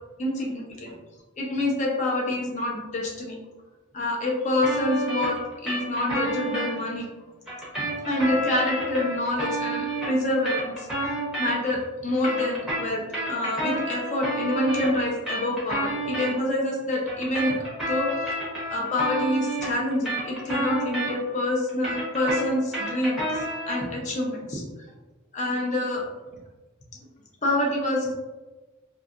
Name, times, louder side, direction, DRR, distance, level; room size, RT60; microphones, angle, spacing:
voice 1, 0.2-0.9 1.4-3.3 3.9-5.4 5.6-7.0 7.9-10.9 11.4-17.6 17.9-18.2 18.7-24.6 25.3-26.0 27.4-28.1, left 1 dB, 35° left, -2 dB, 0.6 m, -26 dB
sound 1, 4.6-6.7 7.5-11.8 12.1-16.3 17.1-21.4 21.7-23.8, right 1 dB, 5° right, 0.7 m, -30 dB
2.7 x 2.3 x 2.4 m, 1.2 s
head